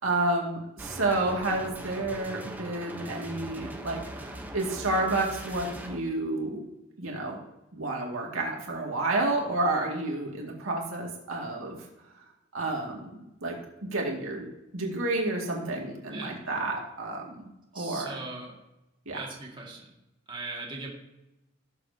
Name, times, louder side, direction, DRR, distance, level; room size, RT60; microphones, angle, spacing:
voice 1, 0.0-6.6 7.0-7.4 7.7-11.8 12.5-13.1 13.4-13.6 13.9-18.2 19.1-19.2, right 2 dB, 85° right, 0 dB, 2.2 m, -30 dB
sound 1, 0.8-6.0, right 1 dB, 10° right, 0.9 m, -41 dB
voice 2, 16.1-16.4 17.7-18.6 19.1-19.9 20.3-20.9, right 3 dB, 25° right, -2 dB, 2.0 m, -39 dB
17.5 x 7.2 x 2.8 m, 0.95 s
head